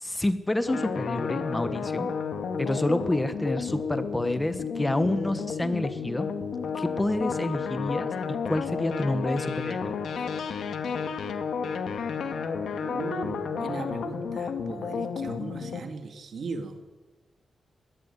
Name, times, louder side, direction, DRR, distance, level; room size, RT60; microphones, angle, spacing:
voice 1, 0.0-2.1 2.6-6.3 6.7-10.0, left 1 dB, 15° left, 11 dB, 1.2 m, -28 dB
sound 1, 0.7-15.8, left 6 dB, 90° left, 2.0 m, -32 dB
voice 2, 12.8-16.8, right 4 dB, 65° right, 7 dB, 2.6 m, -37 dB
21.0 x 16.5 x 9.8 m, 1.2 s
wide cardioid pair, 130°, 0 cm